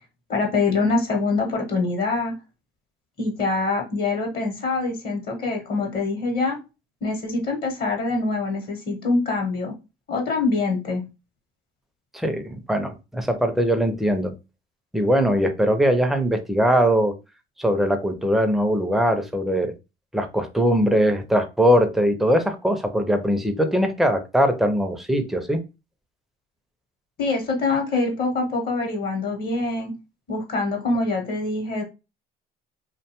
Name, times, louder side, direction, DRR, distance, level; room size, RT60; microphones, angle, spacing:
voice 1, 0.3-2.3 3.2-6.6 7.0-9.7 10.1-11.0 27.2-29.9 30.3-31.8, left 3 dB, 50° left, 1.0 m, -24 dB
voice 2, 12.1-14.3 14.9-17.1 17.6-19.7 20.1-25.6, equal, ahead, 0.5 m, -21 dB
2.6 x 2.2 x 2.9 m
supercardioid pair, 100°, 20 cm